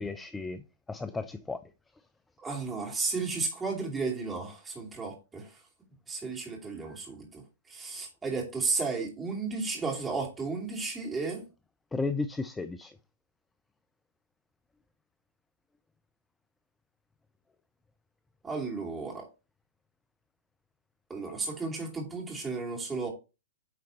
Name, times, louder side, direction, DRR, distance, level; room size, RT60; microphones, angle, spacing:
voice 1, 0.0-1.6 6.9-7.0 11.9-13.0, left 3 dB, 10° left, 0.4 m, -34 dB
voice 2, 2.4-5.6 6.1-11.5 18.4-19.3 21.1-23.1, right 4 dB, 10° right, 2.6 m, -33 dB
9.2 x 3.9 x 4.0 m
figure-of-eight pair, 105°, 0 cm